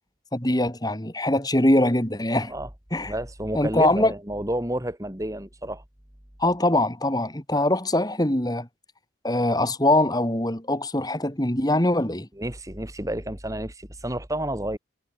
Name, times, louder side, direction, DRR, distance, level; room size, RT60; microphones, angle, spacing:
voice 1, 0.3-2.5 2.9-3.1 3.5-4.1 6.4-8.7 9.2-12.3, left 1 dB, 20° left, 2.9 m, -22 dB
voice 2, 3.1-5.8 12.4-14.8, right 1 dB, 20° right, 3.4 m, -30 dB
head